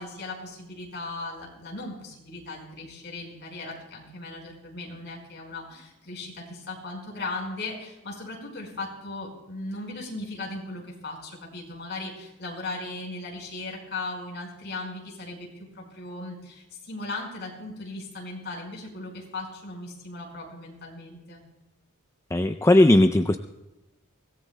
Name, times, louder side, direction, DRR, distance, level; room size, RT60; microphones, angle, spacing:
voice 1, 0.0-21.4, left 2 dB, 55° left, 0 dB, 4.8 m, -37 dB
voice 2, 22.3-23.4, left 1 dB, 15° left, 7 dB, 0.4 m, -18 dB
24.5 x 17.5 x 2.2 m, 0.97 s
head